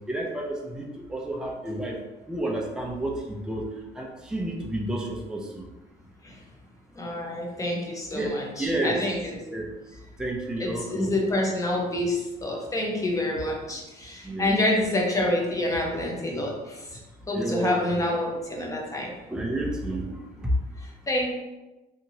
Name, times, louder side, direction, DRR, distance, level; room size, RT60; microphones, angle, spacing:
voice 1, 0.1-2.0 2.3-3.7 4.0-5.6 8.1-9.0 9.5-9.7 10.2-11.1 14.2-14.5 14.8-14.9 17.3-18.0 19.3-20.5, right 1 dB, 5° right, -1 dB, 0.4 m, -30 dB
voice 2, 7.0-9.4 10.6-17.0 17.3-19.1 20.8-21.3, left 1 dB, 20° left, -1 dB, 0.7 m, -27 dB
2.8 x 2.7 x 2.7 m, 1.1 s
cardioid pair, 110°, 17 cm